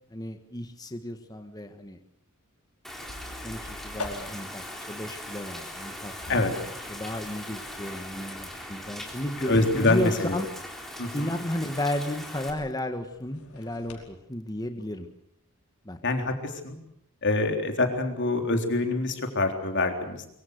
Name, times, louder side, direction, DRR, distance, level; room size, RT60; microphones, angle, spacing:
voice 1, 0.1-2.0 3.4-4.6 4.9-6.5 6.9-10.5 11.1-15.1 15.8-16.0, left 1 dB, 15° left, 7 dB, 1.5 m, -33 dB
Rain, 2.8-12.5, left 1 dB, ahead, 3.9 m, -40 dB
sound 1, 2.9-14.1, left 2 dB, 80° left, 4.9 m, -46 dB
voice 2, 9.4-10.4 11.0-11.3 16.0-16.8 17.2-20.3, left 2 dB, 55° left, 4 dB, 3.7 m, -25 dB
24.0 x 24.0 x 6.7 m, 0.77 s
head